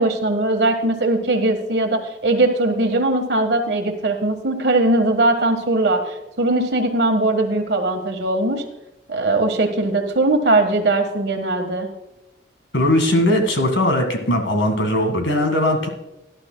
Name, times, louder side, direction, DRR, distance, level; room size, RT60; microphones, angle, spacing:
voice 1, 0.0-8.6 9.1-11.9, right 2 dB, 60° right, 5 dB, 1.5 m, -20 dB
voice 2, 12.7-15.9, left 1 dB, 80° left, 5 dB, 1.8 m, -19 dB
17.5 x 11.5 x 2.2 m, 0.93 s
head